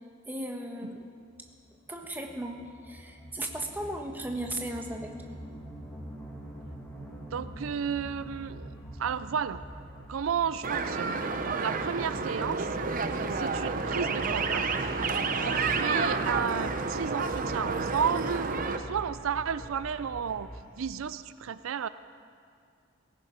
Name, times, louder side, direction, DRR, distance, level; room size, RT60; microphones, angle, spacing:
voice 1, 0.3-1.1 1.9-5.4, right 1 dB, 10° right, 2 dB, 1.2 m, -36 dB
sound 1, 1.4-20.6, equal, 10° left, 2.2 m, -43 dB
voice 2, 7.3-8.7 9.0-9.6 10.1-12.7 13.3-14.9 15.4-20.5 20.8-21.9, right 7 dB, 80° right, 14 dB, 0.4 m, -32 dB
sound 2, 10.6-18.8, right 4 dB, 40° right, 0.8 m, -30 dB
17.5 x 15.0 x 5.1 m, 2.3 s
head